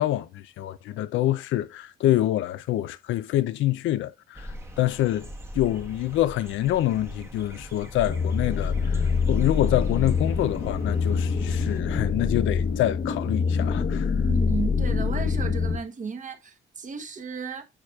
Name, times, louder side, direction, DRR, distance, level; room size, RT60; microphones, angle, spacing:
voice 1, 0.0-5.3 5.5-14.1, left 14 dB, 80° left, 0.5 m, -26 dB
sound 1, 4.3-11.8, equal, 15° right, 1.0 m, -41 dB
sound 2, 8.1-15.8, left 5 dB, 55° left, 1.0 m, -25 dB
voice 2, 14.3-17.6, right 5 dB, 40° right, 1.1 m, -34 dB
8.9 x 4.9 x 2.4 m
cardioid pair, 90°, 20 cm